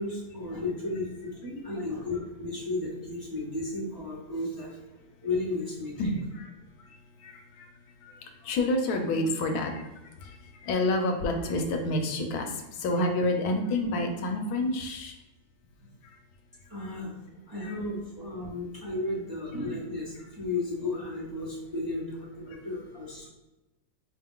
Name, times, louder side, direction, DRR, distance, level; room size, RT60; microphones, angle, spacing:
voice 1, 0.0-4.8 5.2-6.1 16.7-17.1 17.5-23.3, left 2 dB, 15° right, -8 dB, 1.1 m, -34 dB
voice 2, 6.0-6.5 7.2-7.7 8.0-8.1 8.4-9.9 10.2-15.2 16.0-16.2 16.8-16.9 17.6-17.8, left 1 dB, 80° left, 4 dB, 1.1 m, -29 dB
4.6 x 2.2 x 3.6 m, 1.0 s
omnidirectional pair, 1.6 m